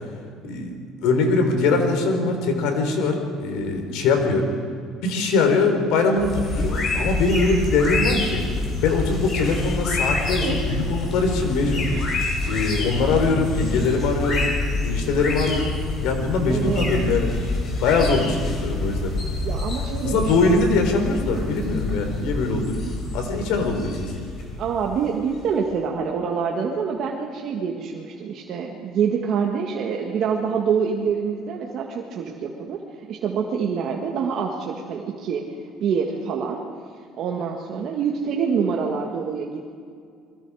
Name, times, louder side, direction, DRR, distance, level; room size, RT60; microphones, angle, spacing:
voice 1, 0.4-0.7 1.0-4.5 5.0-8.4 8.8-11.9 12.5-17.3 17.8-19.1 20.0-22.8 23.1-24.1, left 3 dB, 70° left, 5 dB, 4.0 m, -22 dB
sound 1, 6.2-25.6, left 2 dB, 35° left, 4.2 m, -27 dB
voice 2, 10.4-10.8 16.5-16.9 19.4-20.5 24.6-35.4 35.8-36.6 37.2-39.6, right 6 dB, 45° right, 0 dB, 1.8 m, -26 dB
29.0 x 22.5 x 5.0 m, 2.2 s
cardioid pair, 170°, 0 cm